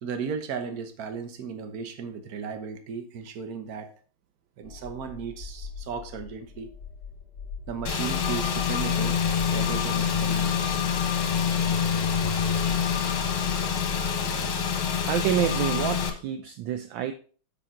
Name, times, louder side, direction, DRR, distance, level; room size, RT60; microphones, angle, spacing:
voice 1, 0.0-3.9 4.6-6.7 7.7-9.2 9.5-10.8, right 6 dB, 50° right, 7 dB, 1.3 m, -35 dB
sound 1, 4.6-14.1, left 5 dB, 55° left, 2.3 m, -42 dB
Car / Engine, 7.9-16.1, left 7 dB, 80° left, 2.1 m, -26 dB
voice 2, 15.0-17.1, right 9 dB, 75° right, 9 dB, 1.2 m, -27 dB
7.0 x 6.9 x 3.7 m, 0.40 s
omnidirectional pair, 2.3 m